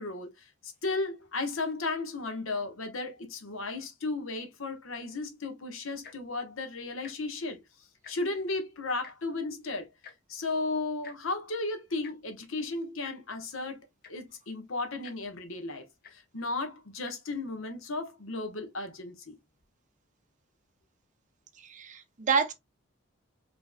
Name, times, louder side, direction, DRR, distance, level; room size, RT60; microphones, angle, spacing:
voice 1, 0.0-7.6 8.1-9.9 10.3-19.4, left 3 dB, 80° left, 1.2 m, -35 dB
Tick-tock, 5.9-6.3 7.0-7.1 7.5-7.6 7.9-8.4 9.0-9.1 10.0-10.2 11.0-11.2 12.0-12.1 13.0-13.2 13.7-13.8 14.0-14.3 15.0-15.2 16.0-16.1 16.9-17.1 17.8-17.9, left 6 dB, 50° left, 0.9 m, -49 dB
voice 2, 21.6-22.5, right 5 dB, 35° right, 0.8 m, -28 dB
5.2 x 3.3 x 2.3 m
head